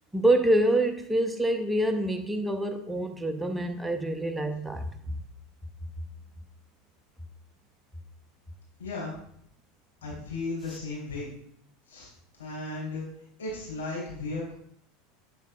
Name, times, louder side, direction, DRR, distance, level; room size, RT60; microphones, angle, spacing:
voice 1, 0.1-5.1, right 1 dB, 5° right, 6 dB, 0.8 m, -26 dB
voice 2, 8.8-9.2 10.0-11.3 11.9-12.1 12.4-13.0 13.4-14.5, left 3 dB, 75° left, -6 dB, 3.4 m, -35 dB
9.2 x 7.4 x 2.4 m, 0.66 s
figure-of-eight pair, 80°, 0 cm